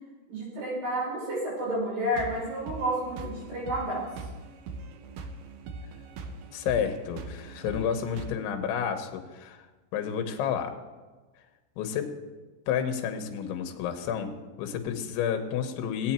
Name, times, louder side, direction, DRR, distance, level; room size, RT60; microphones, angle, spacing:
voice 1, 0.3-4.1, right 1 dB, 50° right, -6 dB, 7.0 m, -30 dB
sound 1, 2.1-8.3, right 3 dB, 75° right, 2.5 m, -41 dB
voice 2, 6.5-9.7 9.9-10.7 11.8-12.2 12.7-16.1, left 8 dB, 80° left, 5 dB, 3.4 m, -30 dB
18.0 x 8.8 x 4.4 m, 1.3 s
omnidirectional pair, 5.4 m